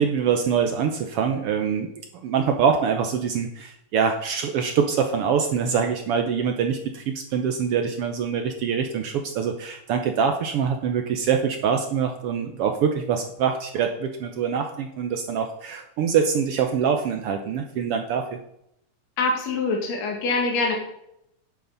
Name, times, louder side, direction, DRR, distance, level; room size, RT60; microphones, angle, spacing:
voice 1, 0.0-1.9 2.2-18.3, right 7 dB, 75° right, 5 dB, 1.3 m, -24 dB
voice 2, 19.2-20.8, left 3 dB, 65° left, 0 dB, 3.1 m, -24 dB
9.4 x 8.4 x 3.9 m, 0.77 s
omnidirectional pair, 3.4 m